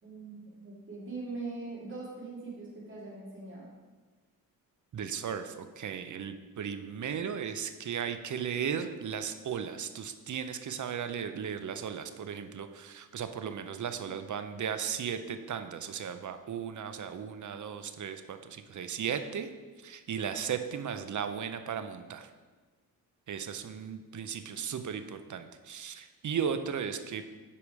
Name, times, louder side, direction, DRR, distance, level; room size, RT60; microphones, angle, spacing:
voice 1, 0.0-3.7, right 3 dB, 35° right, -6 dB, 2.6 m, -41 dB
voice 2, 4.9-19.5 19.8-22.3 23.3-27.2, right 7 dB, 55° right, 9 dB, 0.7 m, -36 dB
8.6 x 4.9 x 4.8 m, 1.3 s
cardioid pair, 80°, 36 cm